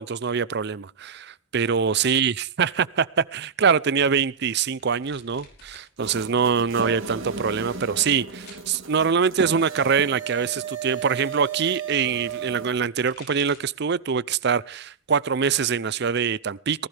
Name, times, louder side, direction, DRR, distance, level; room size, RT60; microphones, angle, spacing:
voice 1, 0.0-2.3 2.6-16.9, right 6 dB, 55° right, 0.6 m, -24 dB
sound 1, 4.1-5.9 6.2-6.9 7.5-8.7 9.7-11.5 12.7-13.8 14.3-14.7 15.1-16.1, left 4 dB, 55° left, 5.7 m, -53 dB
sound 2, 6.0-12.8, right 6 dB, 90° right, 3.1 m, -34 dB
19.5 x 15.5 x 3.4 m
head